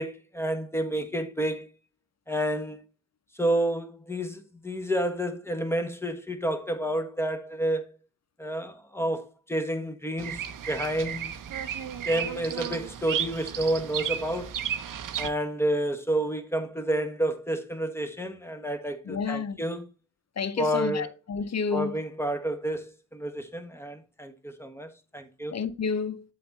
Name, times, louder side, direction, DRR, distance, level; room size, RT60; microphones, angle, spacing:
voice 1, 0.0-1.7 2.3-2.8 3.4-7.8 8.4-11.4 12.1-14.5 15.2-19.8 20.6-21.1 21.7-25.5, right 1 dB, 5° left, 1.4 m, -30 dB
Bird vocalization bird call bird song, 10.2-15.3, right 9 dB, 65° right, 0.7 m, -33 dB
voice 2, 19.1-19.6 20.4-21.9 25.5-26.2, left 5 dB, 45° left, 0.9 m, -30 dB
7.7 x 4.0 x 4.1 m
supercardioid pair, 45°, 35 cm